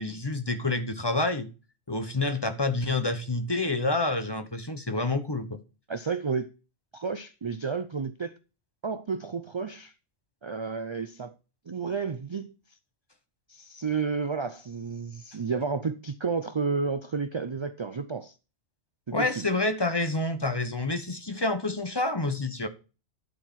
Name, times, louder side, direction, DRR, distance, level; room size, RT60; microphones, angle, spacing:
voice 1, 0.0-1.5 1.9-5.6 19.1-22.7, left 2 dB, 25° left, 0.9 m, -28 dB
voice 2, 5.9-6.5 6.9-8.3 8.8-9.9 10.4-11.3 11.7-12.5 13.5-18.3 19.1-19.5, right 5 dB, 50° right, 0.3 m, -31 dB
11.5 x 4.6 x 5.7 m
omnidirectional pair, 1.2 m